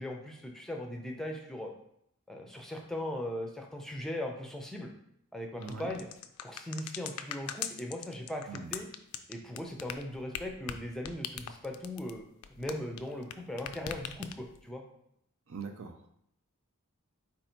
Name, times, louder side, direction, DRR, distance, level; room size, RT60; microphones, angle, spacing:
voice 1, 0.0-1.7 2.3-4.9 5.3-6.1 6.4-8.9 9.3-12.2 12.6-14.8, left 1 dB, ahead, 1 dB, 0.5 m, -39 dB
sound 1, 5.6-13.3 13.6-14.6, left 9 dB, 85° left, 0.4 m, -40 dB
voice 2, 5.6-5.9 8.5-8.7 15.5-16.1, right 5 dB, 65° right, 5 dB, 0.6 m, -42 dB
4.2 x 2.7 x 4.3 m, 0.73 s
head